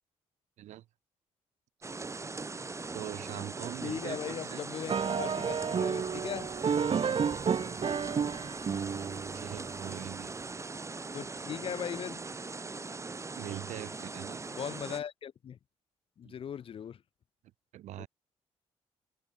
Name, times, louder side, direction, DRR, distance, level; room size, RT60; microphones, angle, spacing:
sound 1, 1.8-15.0, right 3 dB, 25° right, 0.9 m, -41 dB
voice 1, 2.9-4.6 5.0-5.2 6.9-7.3 9.3-10.3 13.4-14.4 16.2-16.3 17.7-18.1, right 14 dB, 80° right, 1.7 m, -43 dB
voice 2, 3.8-6.5 11.1-12.2 14.6-15.6 16.2-17.0 18.0-18.1, left 8 dB, 50° left, 0.5 m, -39 dB
sound 2, 4.9-10.2, right 6 dB, 50° right, 1.2 m, -31 dB
open air
supercardioid pair, 60°, 12 cm